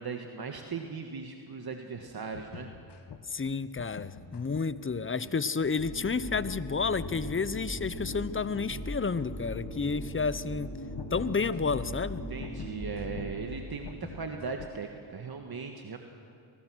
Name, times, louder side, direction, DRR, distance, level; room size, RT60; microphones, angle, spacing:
voice 1, 0.0-2.7 5.2-5.3 12.3-16.0, right 5 dB, 50° right, 4 dB, 1.7 m, -38 dB
sound 1, 2.1-14.8, left 6 dB, 60° left, 1.4 m, -47 dB
voice 2, 3.3-10.7 11.1-12.2, left 4 dB, 25° left, 16 dB, 0.8 m, -31 dB
sound 2, 5.8-14.1, equal, 45° left, 5.0 m, -39 dB
24.0 x 20.5 x 6.3 m, 2.3 s
cardioid pair, 50°, 46 cm